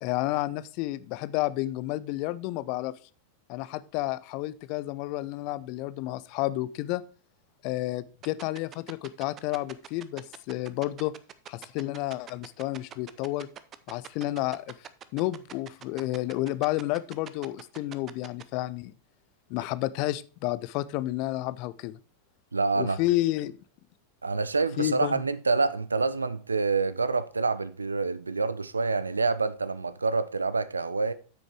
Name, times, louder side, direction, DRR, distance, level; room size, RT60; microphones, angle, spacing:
voice 1, 0.0-2.9 3.5-7.0 7.6-11.1 11.5-13.5 13.9-14.8 15.1-18.9 19.5-22.0 22.8-23.5 24.8-25.2, left 16 dB, 45° left, 0.5 m, -31 dB
sound 1, 8.2-18.4, right 10 dB, 30° right, 0.6 m, -43 dB
voice 2, 22.5-23.0 24.2-31.1, right 4 dB, 75° right, 0.6 m, -27 dB
8.5 x 6.4 x 4.6 m
figure-of-eight pair, 90°, 0 cm